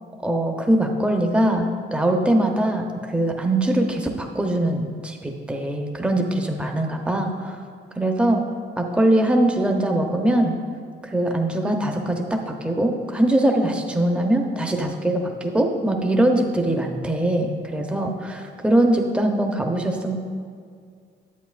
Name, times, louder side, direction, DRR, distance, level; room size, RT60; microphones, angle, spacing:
voice 1, 0.2-2.9 3.1-7.6 7.9-8.4 8.7-10.6 11.0-20.2, right 1 dB, 5° right, 2 dB, 0.7 m, -22 dB
9.3 x 8.0 x 2.4 m, 2.2 s
cardioid pair, 90°, 20 cm